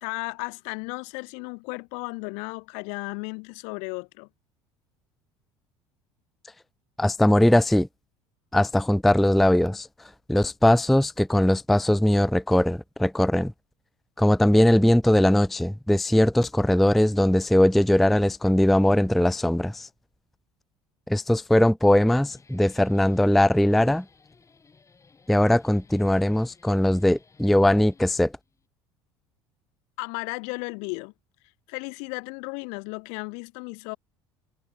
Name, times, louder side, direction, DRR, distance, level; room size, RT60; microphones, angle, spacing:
voice 1, 0.0-4.3 30.0-31.1 31.7-34.0, left 38 dB, 55° left, 0.8 m, -34 dB
voice 2, 7.0-7.9 8.5-9.9 10.3-13.5 14.2-19.9 21.1-24.0 25.3-28.3, left 1 dB, ahead, 0.3 m, -20 dB
Guitar, 22.2-28.7, left 4 dB, 20° left, 5.3 m, -57 dB
figure-of-eight pair, 65°, 14 cm